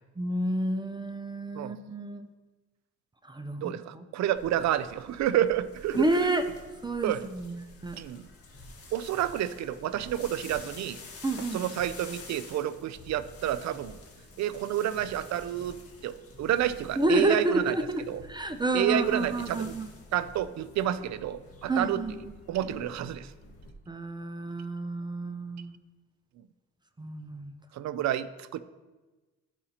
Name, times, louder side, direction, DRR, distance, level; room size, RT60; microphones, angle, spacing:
voice 1, 0.2-2.3 3.2-4.0 6.0-6.4 6.8-8.0 11.2-11.6 17.0-19.9 21.7-22.2 23.9-25.8 27.0-27.5, right 2 dB, 15° right, 8 dB, 0.5 m, -30 dB
voice 2, 3.6-6.0 7.0-7.2 7.9-8.3 8.9-11.0 11.5-14.0 14.4-16.1 16.4-17.7 18.1-18.2 18.7-19.7 20.1-22.0 22.5-23.3 27.7-28.6, right 11 dB, 65° right, 14 dB, 0.5 m, -29 dB
sound 1, 4.4-23.7, left 2 dB, 50° left, 1.7 m, -48 dB
12.5 x 4.9 x 2.9 m, 1.2 s
cardioid pair, 90°, 30 cm